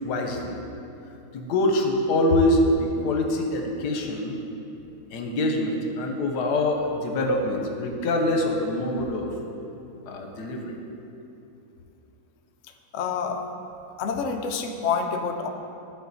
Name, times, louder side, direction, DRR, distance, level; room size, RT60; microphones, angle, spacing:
voice 1, 0.0-0.6 1.3-4.4 5.1-9.3 10.1-10.7, left 1 dB, 85° left, 2 dB, 1.4 m, -24 dB
voice 2, 12.9-13.4 14.0-15.5, left 5 dB, 65° left, 4 dB, 0.8 m, -27 dB
12.0 x 4.1 x 4.0 m, 2.9 s
omnidirectional pair, 1.7 m